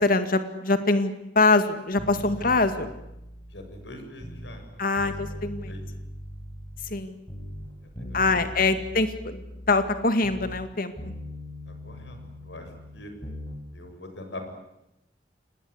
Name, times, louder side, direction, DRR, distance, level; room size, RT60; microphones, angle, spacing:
voice 1, 0.0-2.9 4.8-5.7 6.9-7.1 8.1-9.4 9.7-10.9, left 3 dB, 55° left, 9 dB, 2.2 m, -23 dB
sound 1, 2.0-4.7 5.0-7.0 7.3-10.7 11.0-13.6 13.9-14.0, left 1 dB, 30° left, 5.0 m, -40 dB
voice 2, 2.3-2.7 3.5-5.4 5.6-5.9 7.8-8.5 11.7-13.1 13.7-14.5, left 1 dB, 90° left, 6 dB, 7.1 m, -43 dB
27.5 x 20.0 x 9.7 m, 0.87 s
head